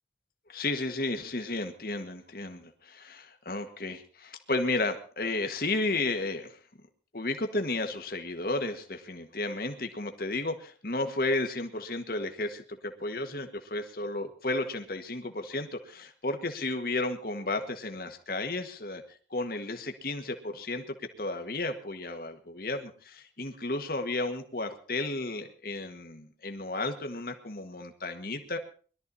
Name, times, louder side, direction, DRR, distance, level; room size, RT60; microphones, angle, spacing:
voice 1, 0.5-6.6 7.1-19.0 19.3-28.6, left 2 dB, 50° left, 6 dB, 1.7 m, -33 dB
21.5 x 13.0 x 4.2 m, 0.41 s
head